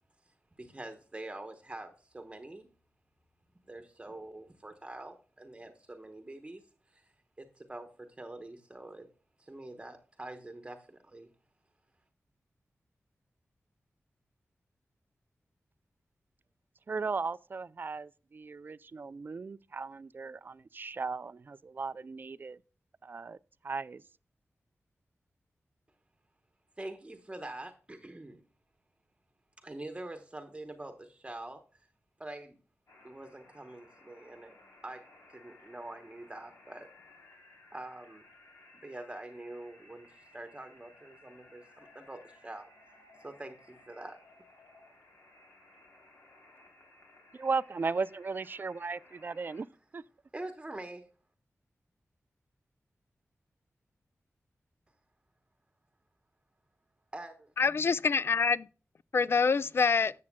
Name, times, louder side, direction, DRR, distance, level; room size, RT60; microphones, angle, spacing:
voice 1, 0.2-2.7 3.7-9.1 9.4-11.3 26.8-28.4 29.6-31.9 32.2-32.6 33.0-34.5 34.8-36.9 37.7-38.2 38.7-44.2 50.3-51.1 57.1-57.5, right 2 dB, 20° right, 0.9 m, -45 dB
voice 2, 16.9-22.6 23.0-23.4 23.6-24.0 47.3-49.7 49.9-50.0, right 4 dB, 45° right, 0.3 m, -36 dB
sound 1, 32.9-49.6, left 2 dB, 80° left, 3.2 m, -59 dB
voice 3, 57.6-58.7 59.1-60.1, left 5 dB, 55° left, 0.3 m, -26 dB
13.0 x 7.5 x 2.2 m
wide cardioid pair, 120°, 5 cm